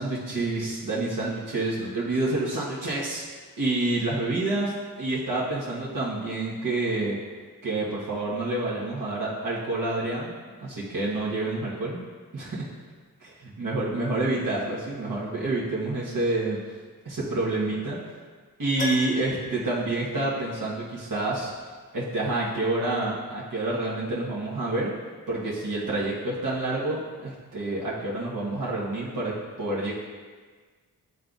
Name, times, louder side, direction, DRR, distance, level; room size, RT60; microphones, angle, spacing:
voice 1, 0.0-3.2 3.6-4.7 5.0-7.2 7.6-10.3 10.6-12.0 12.3-12.6 13.6-16.6 17.0-18.0 18.6-21.5 21.9-24.9 25.3-29.9, right 2 dB, 60° right, -8 dB, 1.3 m, -28 dB
Keyboard (musical), 18.8-20.8 21.1-21.2 23.9-24.0 24.2-24.3, left 3 dB, 20° left, 0.7 m, -38 dB
11.0 x 3.9 x 2.4 m, 1.5 s
wide cardioid pair, 105°, 35 cm